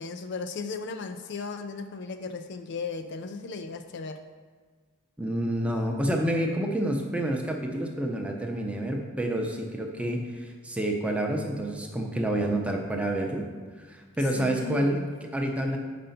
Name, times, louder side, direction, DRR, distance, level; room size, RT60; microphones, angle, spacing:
voice 1, 0.0-4.2 14.4-15.1, left 4 dB, 50° left, 8 dB, 0.4 m, -36 dB
voice 2, 5.2-13.4 13.8-15.8, right 1 dB, 5° right, 1 dB, 0.7 m, -28 dB
6.7 x 5.2 x 5.7 m, 1.5 s
head